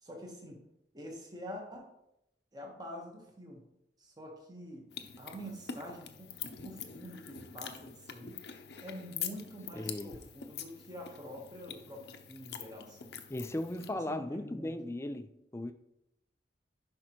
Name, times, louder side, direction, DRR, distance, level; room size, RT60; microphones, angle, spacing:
voice 1, 0.0-0.6 0.9-1.9 2.5-3.6 4.0-4.9 5.2-8.4 8.8-13.2 14.1-14.7, equal, 20° right, 1.2 m, -46 dB
sound 1, 4.9-13.9, left 8 dB, 60° left, 0.6 m, -45 dB
voice 2, 9.7-10.2 13.3-15.7, left 1 dB, 15° left, 0.4 m, -37 dB
10.5 x 5.2 x 3.0 m
head